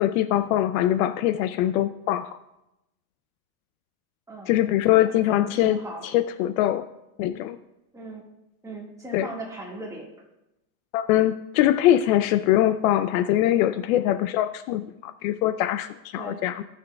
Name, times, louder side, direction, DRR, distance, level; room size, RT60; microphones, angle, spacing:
voice 1, 0.0-2.3 4.5-5.8 6.0-6.8 7.2-7.6 9.1-9.3 10.9-16.6, left 13 dB, 60° left, 11 dB, 0.5 m, -22 dB
voice 2, 5.1-6.1 7.9-8.2 8.6-10.1 16.2-16.4, right 2 dB, 5° right, -2 dB, 1.5 m, -38 dB
18.0 x 6.5 x 2.2 m, 0.90 s
supercardioid pair, 140°, 48 cm